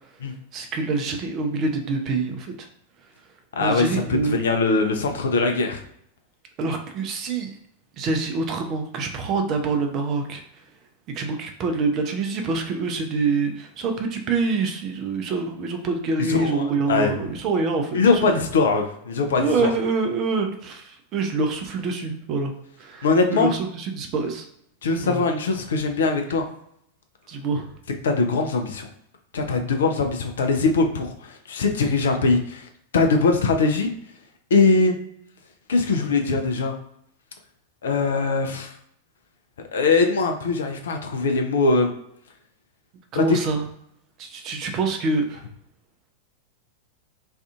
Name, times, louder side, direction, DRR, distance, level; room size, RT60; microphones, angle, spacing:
voice 1, 0.5-2.7 3.6-4.4 6.6-7.6 8.0-10.4 11.1-18.4 19.4-22.5 22.8-24.5 25.0-25.3 27.3-27.7 43.1-43.7 44.2-45.4, right 3 dB, 35° right, 4 dB, 0.5 m, -26 dB
voice 2, 3.5-3.9 4.3-5.8 16.3-17.1 17.9-19.7 23.0-23.5 24.8-26.5 28.0-28.9 29.3-32.6 32.9-33.9 34.5-34.9 35.7-36.7 37.8-38.7 39.7-41.9 43.1-43.4, left 3 dB, 65° left, 4 dB, 0.4 m, -21 dB
2.5 x 2.4 x 2.3 m, 0.72 s
figure-of-eight pair, 90°, 0 cm